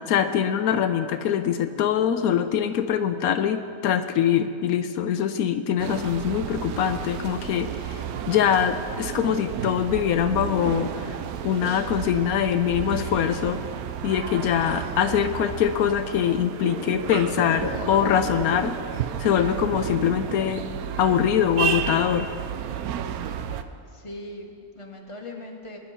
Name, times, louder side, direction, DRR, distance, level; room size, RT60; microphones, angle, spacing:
voice 1, 0.0-8.0 8.3-13.6 14.0-18.7 19.2-20.7 21.0-22.3, left 9 dB, 85° left, 9 dB, 1.1 m, -23 dB
sound 1, 5.8-23.6, right 9 dB, 85° right, 1.1 m, -32 dB
sound 2, 16.6-18.7 19.0-20.4 20.8-21.7 22.3-22.4, right 1 dB, 20° right, 0.8 m, -35 dB
voice 2, 23.9-25.8, left 1 dB, 20° left, 1 dB, 1.4 m, -39 dB
21.0 x 10.0 x 4.3 m, 2.5 s
omnidirectional pair, 1.5 m